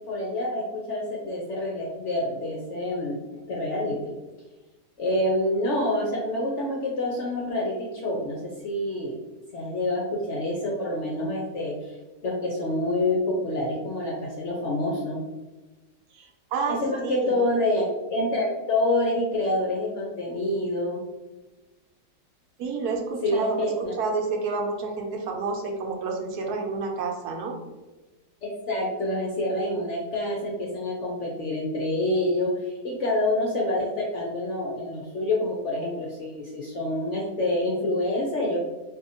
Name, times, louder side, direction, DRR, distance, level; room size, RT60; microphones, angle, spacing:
voice 1, 0.1-3.2 3.5-4.1 5.0-9.2 9.5-11.7 12.2-15.2 16.7-21.0 23.2-23.9 28.4-38.6, left 1 dB, 65° left, -2 dB, 0.7 m, -27 dB
voice 2, 16.1-16.8 17.0-17.4 22.6-27.6, right 4 dB, 75° right, 1 dB, 1.1 m, -29 dB
4.0 x 2.8 x 2.6 m, 1.2 s
omnidirectional pair, 1.8 m